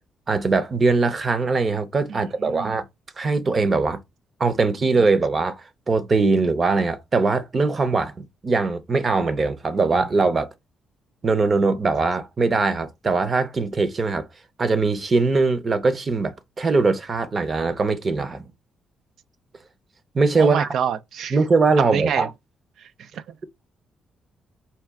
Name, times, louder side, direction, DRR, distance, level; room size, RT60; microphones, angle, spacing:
voice 1, 0.3-2.8 3.2-4.0 4.4-10.5 11.2-14.3 14.6-18.4 20.1-20.7 21.3-22.3, right 3 dB, 35° right, 0.7 m, -21 dB
voice 2, 2.1-2.8 20.4-21.4 21.8-22.3 22.8-23.2, right 8 dB, 70° right, 0.4 m, -27 dB
4.2 x 2.3 x 3.5 m
cardioid pair, 90°, 0 cm